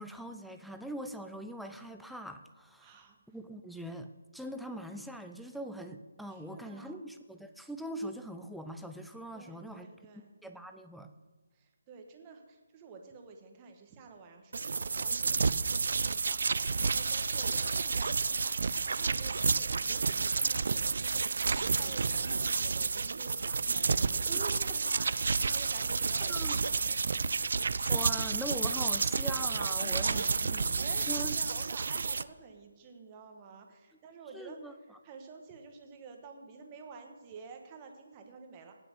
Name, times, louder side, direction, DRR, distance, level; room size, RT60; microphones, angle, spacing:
voice 1, 0.0-9.9 10.4-11.1 26.3-26.6 27.9-31.4 34.3-34.7, right 1 dB, ahead, 6 dB, 0.5 m, -42 dB
voice 2, 2.8-3.2 3.5-3.6 6.3-7.0 9.3-10.3 11.5-27.3 29.8-38.8, right 5 dB, 15° right, 4 dB, 1.3 m, -50 dB
sound 1, 14.5-32.2, right 4 dB, 55° right, 0.5 m, -30 dB
18.0 x 6.0 x 6.7 m, 1.4 s
hypercardioid pair, 170°, 0 cm